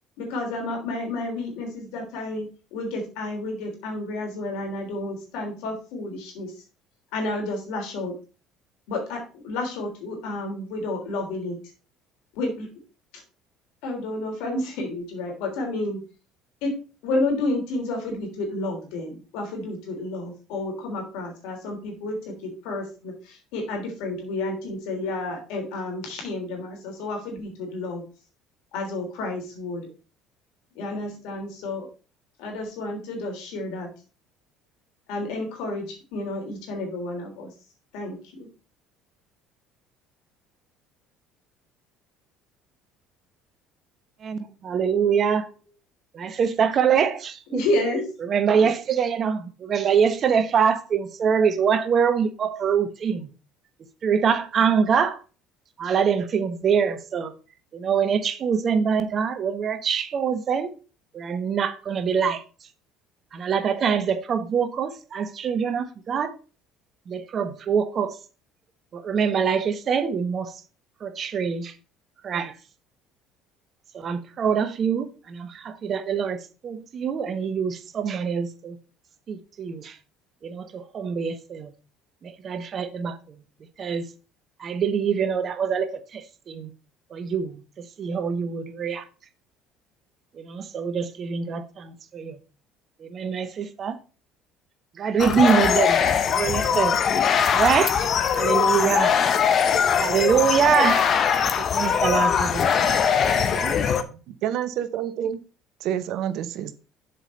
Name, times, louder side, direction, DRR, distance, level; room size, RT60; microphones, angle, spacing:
voice 1, 0.2-6.5 7.1-8.2 8.9-11.6 12.3-12.7 13.8-16.0 16.6-16.7 17.0-28.1 28.7-29.9 30.7-31.9 32.4-33.9 35.1-37.5 37.9-38.5 47.5-48.1, left 2 dB, 70° left, 3.2 m, -30 dB
voice 2, 44.2-45.5 46.1-47.7 48.2-53.3 54.0-55.2 55.8-57.3 57.7-60.7 61.1-62.4 63.3-66.4 67.1-68.2 68.9-70.5 71.0-71.7 72.2-72.5 73.9-78.8 79.3-80.0 80.4-81.7 82.2-83.4 83.8-84.1 84.6-86.7 87.1-89.0 90.3-92.4 93.0-94.0 94.9-99.2 100.0-101.1 101.6-102.9 103.3-103.8 104.1-104.2, right 7 dB, 45° right, 1.1 m, -24 dB
sound 1, 95.2-104.0, left 7 dB, 50° left, 1.0 m, -21 dB
voice 3, 103.8-105.4 105.8-106.7, right 10 dB, 65° right, 0.9 m, -29 dB
7.3 x 5.2 x 5.4 m
hypercardioid pair, 65°, 0 cm